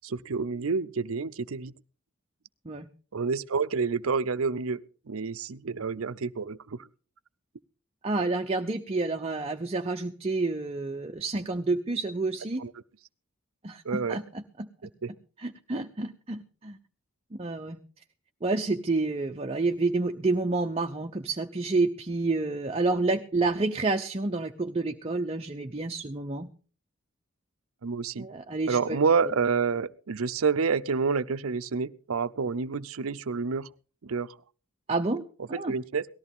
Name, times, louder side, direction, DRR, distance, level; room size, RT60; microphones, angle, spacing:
voice 1, 0.0-1.7 3.1-4.8 5.1-6.8 12.6-12.7 13.8-14.2 14.8-15.1 27.8-28.3 28.7-33.7 34.0-34.3 35.5-36.1, right 5 dB, 75° right, 0.6 m, -28 dB
voice 2, 8.0-12.6 13.6-14.2 14.6-14.7 15.4-16.8 17.4-17.8 18.4-26.5 28.2-29.0 34.9-35.2 35.5-35.7, right 3 dB, 30° right, 0.7 m, -29 dB
18.5 x 14.0 x 3.6 m
head